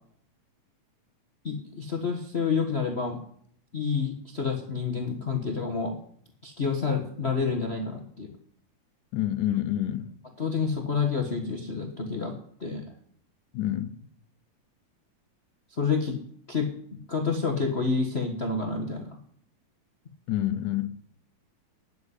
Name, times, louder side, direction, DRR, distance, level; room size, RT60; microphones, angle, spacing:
voice 1, 1.4-3.2 3.7-5.9 6.4-8.4 10.4-12.3 12.6-12.9 15.8-16.2 16.5-19.2, left 5 dB, 60° left, 0.6 m, -29 dB
voice 2, 9.1-10.1 13.5-14.0 20.3-20.9, left 12 dB, 85° left, 2.4 m, -28 dB
9.6 x 8.3 x 9.5 m
omnidirectional pair, 3.5 m